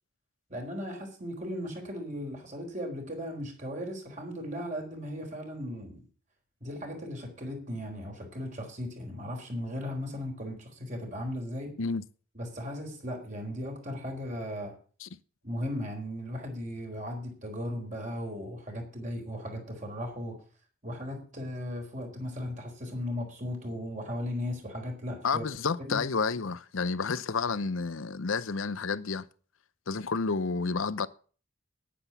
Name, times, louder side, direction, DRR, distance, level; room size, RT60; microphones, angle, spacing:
voice 1, 0.5-6.0 6.6-11.7 12.3-14.8 15.4-20.4 20.8-25.4 25.8-26.0, left 1 dB, 40° right, 4.2 m, -37 dB
voice 2, 25.2-29.3 29.9-31.1, left 4 dB, 80° left, 0.7 m, -30 dB
10.5 x 10.0 x 7.1 m
head